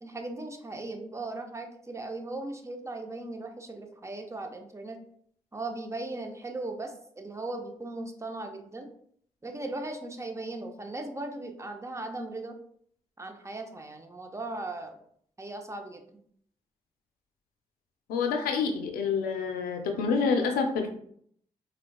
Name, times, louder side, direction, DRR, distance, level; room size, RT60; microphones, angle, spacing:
voice 1, 0.0-5.0 5.5-8.9 9.4-12.6 13.2-15.0 15.4-16.2, right 2 dB, 20° right, 5 dB, 0.5 m, -38 dB
voice 2, 18.1-20.9, left 5 dB, 85° left, 5 dB, 0.4 m, -27 dB
3.8 x 2.1 x 2.2 m, 0.65 s
supercardioid pair, 40°, 15 cm